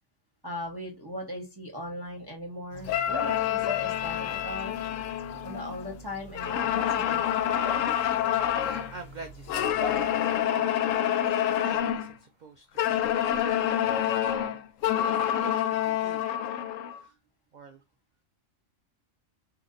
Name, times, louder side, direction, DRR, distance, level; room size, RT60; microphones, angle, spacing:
voice 1, 0.4-4.8 5.4-7.2, left 1 dB, 20° right, 0.9 m, -38 dB
sound 1, 2.7-10.1, left 4 dB, 50° left, 1.1 m, -42 dB
sound 2, 2.9-5.9 6.3-8.9 9.5-12.1 12.8-17.0, left 10 dB, 75° left, 0.9 m, -27 dB
voice 2, 8.6-14.7 14.9-16.3 16.9-17.2 17.5-17.8, right 4 dB, 80° right, 0.4 m, -47 dB
4.4 x 2.8 x 3.8 m
omnidirectional pair, 1.4 m